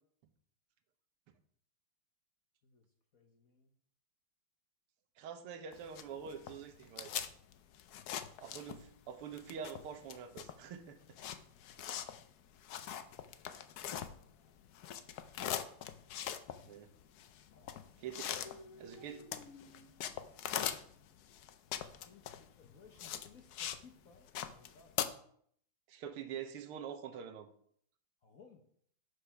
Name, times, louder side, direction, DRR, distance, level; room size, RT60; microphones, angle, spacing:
voice 1, 3.1-3.7 11.6-12.1 13.1-15.1 17.5-17.9 18.4-21.2 22.0-25.0 28.2-28.6, left 3 dB, 55° left, 3 dB, 1.0 m, -60 dB
voice 2, 5.2-7.2 8.4-11.0 16.6-16.9 18.0-18.3 18.8-19.2 25.9-27.5, right 7 dB, 80° right, 9 dB, 1.8 m, -45 dB
sound 1, 5.7-9.0 9.3-14.5 14.7-23.8 24.1-25.1, left 10 dB, 80° left, 0.8 m, -41 dB
6.6 x 6.6 x 5.7 m, 0.63 s
omnidirectional pair, 2.4 m